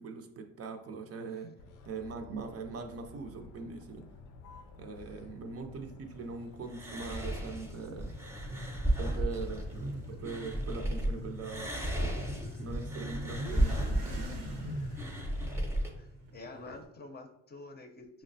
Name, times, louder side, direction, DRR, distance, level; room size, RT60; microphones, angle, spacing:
voice 1, 0.0-1.5 1.9-4.1 4.8-8.1 9.0-12.2 12.6-14.5, right 4 dB, 50° right, 5 dB, 0.5 m, -42 dB
Motor vehicle (road), 1.6-15.6, left 4 dB, 80° left, 0.5 m, -49 dB
sound 1, 6.7-11.1 11.4-15.9, right 1 dB, 10° right, 0.7 m, -34 dB
Motorcycle / Accelerating revving vroom, 8.0-16.8, right 1 dB, 90° right, 0.8 m, -44 dB
voice 2, 15.9-18.2, left 2 dB, 35° left, 4 dB, 0.6 m, -49 dB
5.7 x 2.0 x 2.6 m, 0.80 s
cardioid pair, 90°, 30 cm